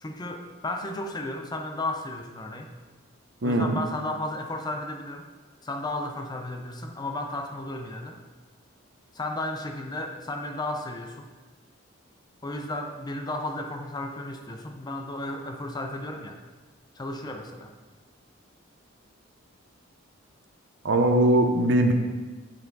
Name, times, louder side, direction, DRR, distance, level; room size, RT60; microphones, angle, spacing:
voice 1, 0.0-2.7 3.4-5.2 5.6-8.2 9.1-11.3 12.4-16.4 17.0-17.7, left 1 dB, 20° left, 4 dB, 0.5 m, -34 dB
voice 2, 3.4-3.8 20.8-21.9, right 1 dB, 60° right, 4 dB, 0.7 m, -21 dB
8.8 x 4.4 x 4.0 m, 1.3 s
head